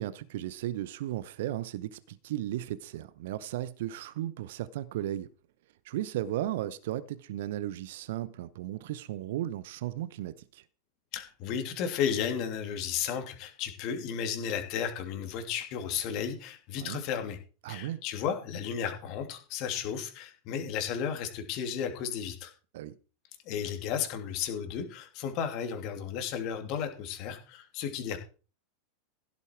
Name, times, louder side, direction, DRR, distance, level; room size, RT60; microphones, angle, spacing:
voice 1, 0.0-5.3 5.8-10.6 16.8-17.0 17.6-18.0 22.7-22.9, right 13 dB, 60° right, 0.8 m, -35 dB
voice 2, 11.1-17.4 17.7-22.5 23.4-28.2, left 8 dB, 45° left, 2.9 m, -33 dB
16.0 x 8.4 x 4.6 m
figure-of-eight pair, 90°, 0 cm